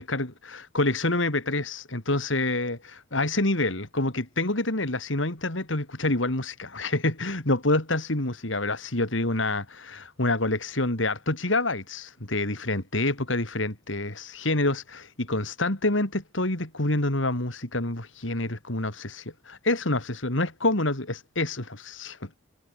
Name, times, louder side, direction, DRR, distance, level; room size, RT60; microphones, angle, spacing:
voice 1, 0.0-22.3, left 2 dB, 90° left, 3.9 m, -27 dB
head